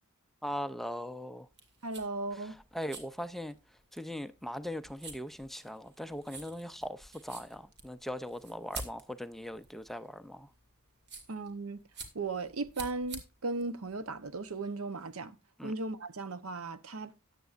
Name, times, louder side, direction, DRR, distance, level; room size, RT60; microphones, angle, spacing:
voice 1, 0.4-1.5 2.7-3.6 3.9-10.5 15.6-15.7, equal, ahead, 0.4 m, -40 dB
sound 1, 1.5-14.6, right 3 dB, 50° right, 2.1 m, -49 dB
voice 2, 1.8-2.6 11.3-11.8 12.1-15.4 15.6-17.1, right 3 dB, 70° right, 0.8 m, -36 dB
13.5 x 9.2 x 2.5 m
head